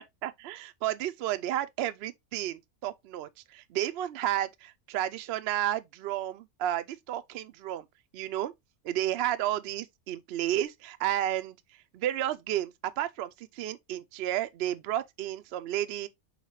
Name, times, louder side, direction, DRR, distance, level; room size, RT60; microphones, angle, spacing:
voice 1, 0.0-7.9 8.1-8.5 8.8-11.6 11.9-16.1, right 12 dB, 75° right, 0.5 m, -32 dB
5.7 x 3.0 x 2.9 m
omnidirectional pair, 1.6 m